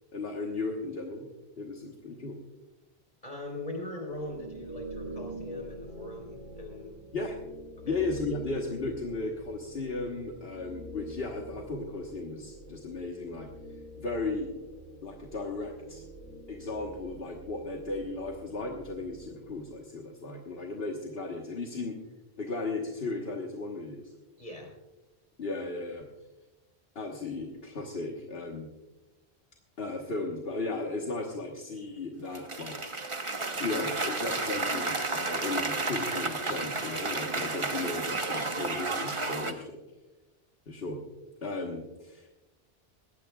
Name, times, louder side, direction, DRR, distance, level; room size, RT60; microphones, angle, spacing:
voice 1, 0.1-1.3 1.6-2.4 7.1-7.4 7.8-13.5 14.0-14.5 15.0-16.0 16.5-22.0 22.4-24.0 25.4-26.1 26.9-28.7 29.8-32.8 33.6-39.8 40.7-41.0 41.4-42.3, left 3 dB, 65° left, 0 dB, 1.6 m, -35 dB
voice 2, 3.2-6.9 7.8-8.0 24.4-24.7, left 1 dB, 40° left, 1 dB, 4.1 m, -40 dB
sound 1, 4.1-19.9, right 1 dB, 80° right, 3.9 m, -46 dB
Cheering / Applause, 32.3-39.5, right 3 dB, 30° right, 1.1 m, -32 dB
21.0 x 16.5 x 2.3 m, 1.1 s
omnidirectional pair, 1.1 m